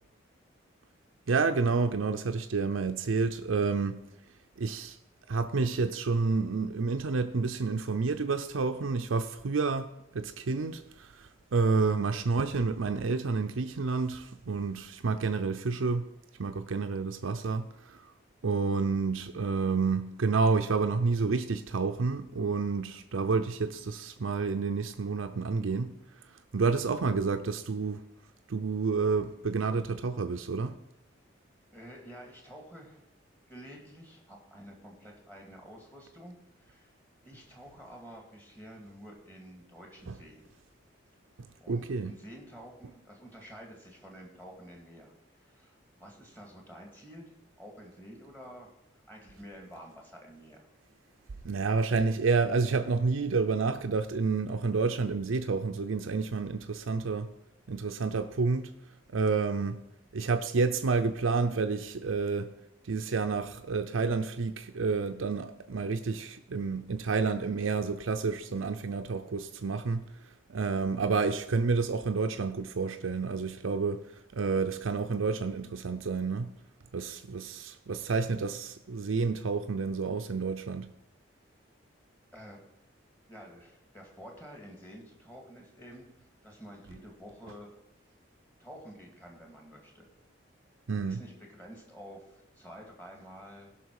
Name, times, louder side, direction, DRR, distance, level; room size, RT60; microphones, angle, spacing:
voice 1, 1.3-4.0 4.6-5.0 5.3-16.1 16.4-18.1 18.4-25.9 26.5-28.0 28.5-30.8 40.1-40.2 41.7-42.1 51.4-57.3 57.7-58.7 59.1-59.8 60.1-62.5 62.8-70.0 70.5-76.5 76.9-80.9 90.9-91.2, right 4 dB, 90° right, 0.6 m, -29 dB
voice 2, 31.7-33.0 33.5-36.9 37.2-40.5 41.6-45.7 46.0-47.3 47.6-48.7 49.1-50.7 82.3-82.6 83.3-86.1 86.4-87.7 88.6-90.1 90.9-93.7, equal, 10° left, 2.2 m, -49 dB
16.5 x 6.0 x 4.7 m
head